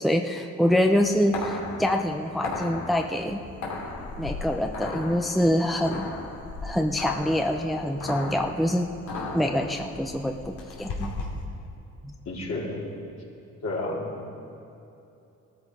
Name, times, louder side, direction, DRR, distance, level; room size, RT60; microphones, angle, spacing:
voice 1, 0.0-3.4 4.2-6.1 6.6-8.9 9.3-11.1 12.0-12.1, equal, ahead, 3 dB, 0.7 m, -25 dB
sound 1, 0.7-11.4, left 3 dB, 80° left, 2.7 m, -36 dB
voice 2, 12.3-12.8 13.6-14.1, left 2 dB, 60° left, -4 dB, 4.0 m, -30 dB
18.5 x 13.0 x 4.9 m, 2.8 s
cardioid pair, 90°, 30 cm